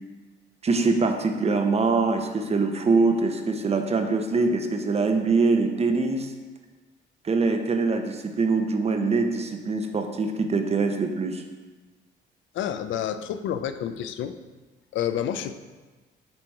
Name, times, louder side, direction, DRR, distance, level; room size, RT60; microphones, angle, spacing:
voice 1, 0.6-6.3 7.2-11.4, right 3 dB, 30° right, 5 dB, 0.7 m, -23 dB
voice 2, 12.5-14.4 14.9-15.6, left 9 dB, 75° left, 10 dB, 0.4 m, -29 dB
7.6 x 2.9 x 4.7 m, 1.3 s
cardioid pair, 90°, 20 cm